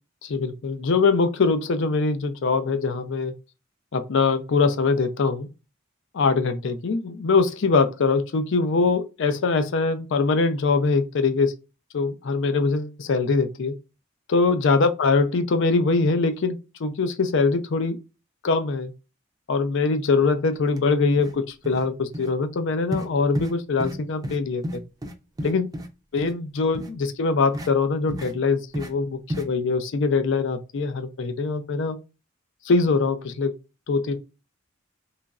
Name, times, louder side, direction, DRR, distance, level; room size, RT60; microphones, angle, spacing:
voice 1, 0.2-3.3 3.9-5.5 6.1-11.5 11.9-13.7 14.3-18.0 18.4-18.9 19.5-24.8 25.4-25.7 26.1-32.0 32.6-33.5 33.9-34.2, left 4 dB, 65° left, 0.5 m, -23 dB
sound 1, 20.7-20.8 21.1-21.4 21.6-21.9 22.1-22.3 22.9-23.1 23.3-23.5 23.8-24.0 24.2-24.4 24.6-25.9 26.2-26.3 26.7-26.9 27.5-27.7 28.1-28.3 28.7-28.9 29.3-29.4, equal, 20° right, 0.4 m, -32 dB
3.0 x 2.4 x 2.3 m
head